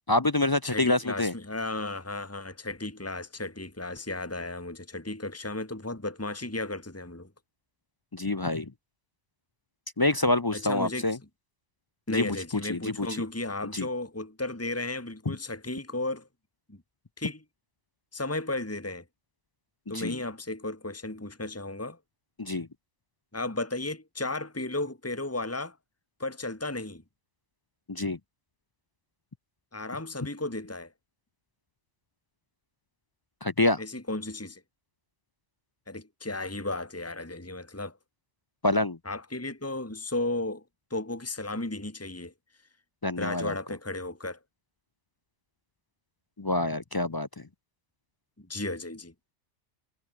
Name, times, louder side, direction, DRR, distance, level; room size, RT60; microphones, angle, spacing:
voice 1, 0.1-1.3 8.1-8.7 10.0-11.2 12.1-12.4 12.7-13.1 13.7-13.9 15.3-15.4 19.9-20.2 22.4-22.7 27.9-28.2 33.4-33.8 38.6-39.0 43.0-43.5 46.4-47.5, left 2 dB, 30° left, 0.5 m, -26 dB
voice 2, 0.6-7.3 10.5-11.1 12.1-16.3 16.7-16.8 17.2-17.4 18.1-19.0 19.9-22.0 23.3-25.8 26.2-27.0 29.7-30.9 33.8-34.6 35.9-38.0 39.1-40.6 40.9-42.3 43.2-44.4 48.4-49.1, left 2 dB, 10° left, 2.3 m, -34 dB
omnidirectional pair, 1.2 m